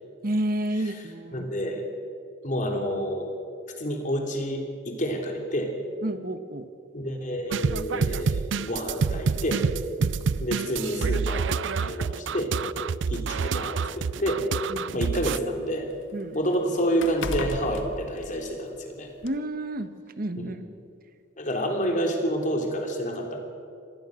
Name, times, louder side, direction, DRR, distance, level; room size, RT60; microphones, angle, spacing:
voice 1, 0.2-1.5 6.0-6.7 10.0-10.1 14.7-15.1 16.1-16.4 19.2-19.9 20.2-20.6, right 1 dB, 50° right, 10 dB, 1.3 m, -30 dB
voice 2, 1.3-1.8 2.4-3.3 3.8-5.7 6.9-9.7 10.4-12.6 13.1-14.5 14.9-15.9 16.3-19.1 20.5-20.6 21.4-23.4, equal, 40° left, 3 dB, 3.4 m, -29 dB
sound 1, 7.5-15.4, right 5 dB, 70° right, 0.5 m, -27 dB
sound 2, 10.2-10.4 11.4-11.5 12.0-12.1 13.0-15.0 15.4-18.8 19.2-19.4, left 2 dB, 90° left, 1.6 m, -37 dB
25.5 x 19.5 x 6.5 m, 2.4 s
head